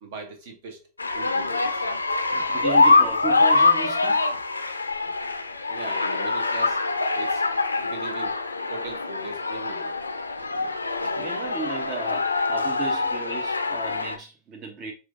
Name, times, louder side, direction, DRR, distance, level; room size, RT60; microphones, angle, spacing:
voice 1, 0.0-0.8 1.1-1.8 5.6-6.8 7.1-7.5 7.8-8.4 8.7-9.9, right 3 dB, 50° right, 1.0 m, -39 dB
sound 1, 1.0-14.2, left 3 dB, 80° left, 0.4 m, -24 dB
voice 2, 2.3-4.2 10.5-10.7 11.2-14.9, right 5 dB, 35° right, 0.7 m, -35 dB
5.9 x 2.6 x 2.5 m
figure-of-eight pair, 90°, 0 cm